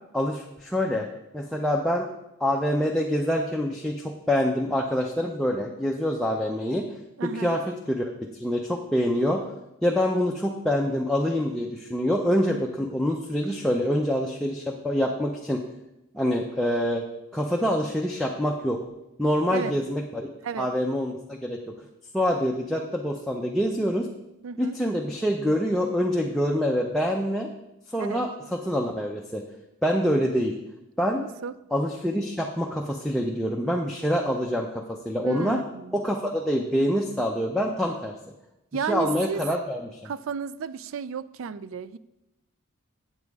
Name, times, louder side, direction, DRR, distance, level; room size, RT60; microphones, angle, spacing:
voice 1, 0.1-1.1 1.3-2.1 2.4-6.8 7.2-7.6 7.9-9.4 9.8-15.6 16.1-17.0 17.3-18.8 19.2-20.3 20.6-21.7 22.1-24.1 24.6-27.5 27.9-29.4 29.8-30.6 31.0-31.2 31.7-35.6 35.9-38.1 38.9-40.1, equal, ahead, 0 dB, 0.5 m, -26 dB
voice 2, 7.2-7.6 13.5-13.6 19.5-19.8 20.4-20.7 24.4-24.8 28.0-28.2 31.2-31.5 35.2-35.9 38.7-39.4 40.0-42.0, right 6 dB, 65° right, 16 dB, 0.3 m, -33 dB
8.1 x 7.2 x 4.7 m, 0.91 s
head